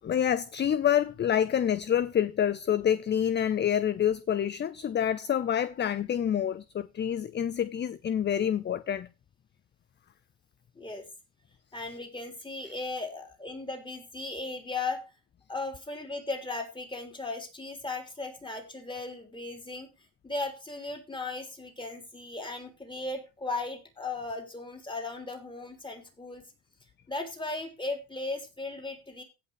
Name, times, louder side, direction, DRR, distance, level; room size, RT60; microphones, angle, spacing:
voice 1, 0.0-9.1, left 9 dB, 25° left, 0.5 m, -27 dB
voice 2, 10.8-11.1 11.7-15.0 15.5-19.9 20.2-26.4 27.1-29.2, left 3 dB, 10° left, 3.6 m, -37 dB
16.5 x 5.8 x 4.7 m
cardioid pair, 110°, 40 cm